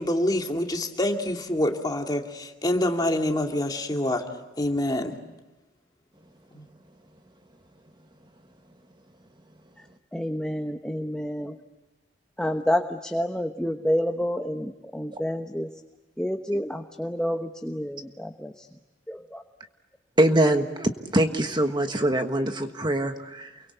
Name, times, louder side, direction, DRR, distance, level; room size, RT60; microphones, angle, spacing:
voice 1, 0.0-4.2 4.6-5.2 6.5-6.6, left 1 dB, 20° left, 2 dB, 2.4 m, -26 dB
voice 2, 10.1-11.5 12.4-15.7 16.2-18.5 19.1-19.4, equal, 5° left, 5 dB, 1.0 m, -29 dB
voice 3, 20.2-23.6, right 1 dB, 25° right, 6 dB, 1.4 m, -23 dB
29.0 x 23.5 x 8.3 m, 1.1 s
head